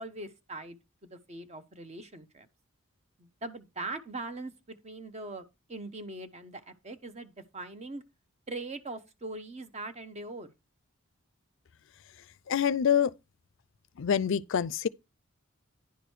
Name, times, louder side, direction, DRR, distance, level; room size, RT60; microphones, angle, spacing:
voice 1, 0.0-2.5 3.2-8.0 8.5-10.5, right 2 dB, 30° right, 0.9 m, -41 dB
voice 2, 12.5-13.1 14.0-14.9, left 8 dB, 65° left, 0.4 m, -26 dB
10.5 x 5.0 x 4.5 m
head